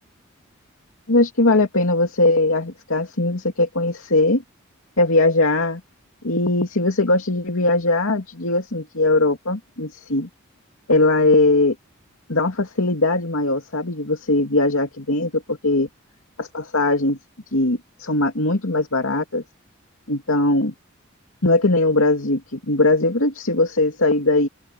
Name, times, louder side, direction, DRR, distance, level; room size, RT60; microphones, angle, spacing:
voice 1, 1.1-4.4 5.0-5.8 6.2-10.3 10.9-11.8 12.3-15.9 16.4-17.2 17.5-19.4 20.1-20.7 21.4-24.5, left 2 dB, 80° left, 2.6 m, -20 dB
open air
head